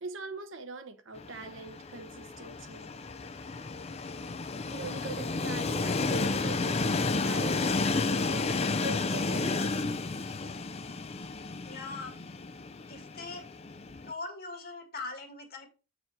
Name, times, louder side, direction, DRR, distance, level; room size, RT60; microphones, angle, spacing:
voice 1, 0.0-2.9 4.7-9.8, right 3 dB, 65° right, 1.1 m, -42 dB
Train, 1.2-14.1, left 3 dB, 30° left, 0.5 m, -32 dB
voice 2, 11.6-12.2 12.9-13.4 14.0-15.7, left 3 dB, 50° left, 1.9 m, -41 dB
7.6 x 4.9 x 4.7 m
head